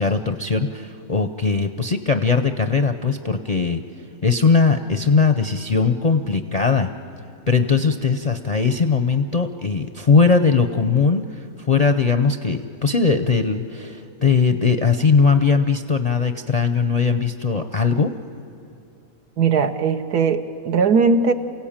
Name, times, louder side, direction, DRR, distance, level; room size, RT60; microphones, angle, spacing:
voice 1, 0.0-3.8 4.2-6.9 7.5-18.2, left 5 dB, 45° left, 7 dB, 0.5 m, -19 dB
voice 2, 19.4-21.3, right 5 dB, 85° right, 7 dB, 1.6 m, -19 dB
28.5 x 17.0 x 8.8 m, 2.6 s
omnidirectional pair, 1.6 m